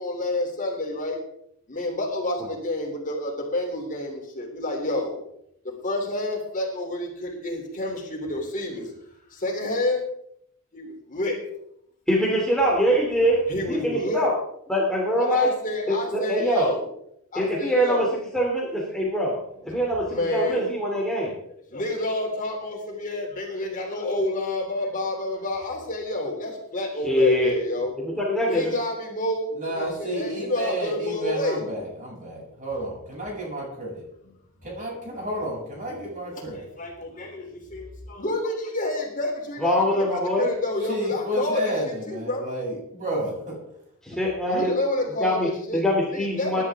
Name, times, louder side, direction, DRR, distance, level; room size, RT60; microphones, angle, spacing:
voice 1, 0.0-1.2 1.7-5.2 5.8-8.9 9.3-10.0 10.7-11.4 13.5-14.3 15.2-16.9 17.3-18.1 20.1-20.7 21.2-21.3 21.7-27.9 28.5-31.6 36.5-41.7 42.1-42.4 44.5-45.8 46.1-46.6, left 1 dB, 35° left, 0 dB, 3.4 m, -29 dB
voice 2, 12.1-14.3 14.7-15.5 15.9-16.7 17.3-18.1 18.3-19.3 19.6-21.3 27.0-27.5 28.0-28.7 39.6-40.5 44.0-44.7 45.2-46.6, equal, 5° left, -4 dB, 3.0 m, -23 dB
voice 3, 29.5-34.0 34.6-36.7 40.8-43.6, right 1 dB, 35° right, -3 dB, 7.7 m, -31 dB
21.5 x 11.5 x 3.7 m, 0.74 s
head